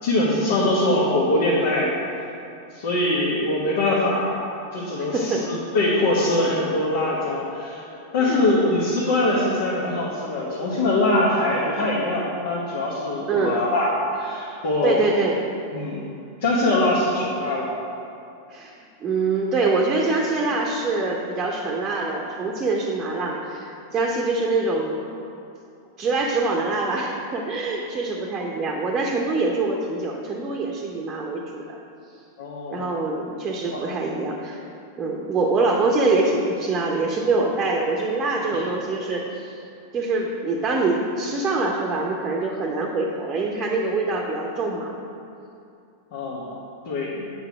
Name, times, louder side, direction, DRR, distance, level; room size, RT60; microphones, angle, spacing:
voice 1, 0.0-1.9 2.7-4.3 4.7-15.1 15.7-16.0 16.4-17.7 32.4-32.9 33.7-33.8 38.5-38.7 46.1-47.3, left 1 dB, 55° left, -5 dB, 1.2 m, -23 dB
voice 2, 5.1-5.5 8.2-8.4 13.3-13.6 14.8-15.4 18.5-18.7 19.0-25.0 26.0-31.8 32.7-34.6 35.0-39.6 39.9-45.0, right 3 dB, 25° right, -1 dB, 0.9 m, -24 dB
8.7 x 5.5 x 4.8 m, 2.6 s
figure-of-eight pair, 90°, 0 cm